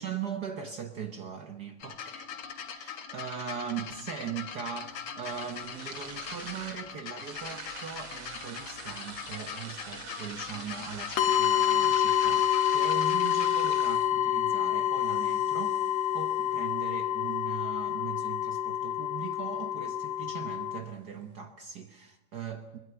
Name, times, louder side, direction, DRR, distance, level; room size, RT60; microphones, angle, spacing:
voice 1, 0.0-2.3 2.7-22.8, right 7 dB, 70° right, 0.9 m, -40 dB
sound 1, 1.8-13.5 14.4-14.5, left 7 dB, 50° left, 2.4 m, -42 dB
sound 2, 3.4-21.4, right 5 dB, 45° right, 2.8 m, -48 dB
sound 3, 11.2-20.8, left 11 dB, 90° left, 2.7 m, -27 dB
21.5 x 21.5 x 6.9 m
omnidirectional pair, 3.4 m